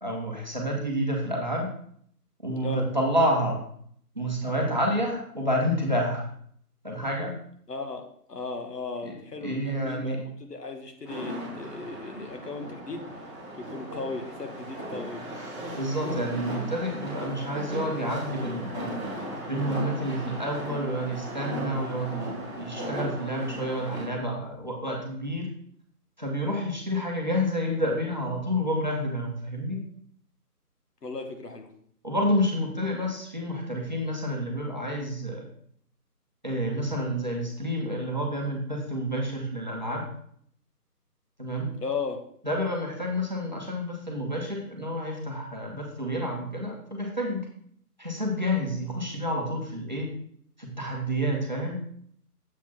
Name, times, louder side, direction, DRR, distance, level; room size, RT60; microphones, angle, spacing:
voice 1, 0.0-1.7 2.4-3.6 4.1-6.3 6.8-7.3 9.0-10.2 15.8-19.0 19.5-25.5 26.2-29.8 32.0-35.5 36.4-40.0 41.4-41.7 42.4-47.5 48.0-50.1 50.6-51.8, equal, 30° right, -1 dB, 0.9 m, -29 dB
voice 2, 7.7-15.2 31.0-31.7 41.8-42.2, left 3 dB, 75° left, 5 dB, 1.4 m, -36 dB
sound 1, 11.1-24.0, right 1 dB, 20° left, 1.4 m, -37 dB
7.2 x 4.0 x 4.1 m, 0.64 s
figure-of-eight pair, 175°, 48 cm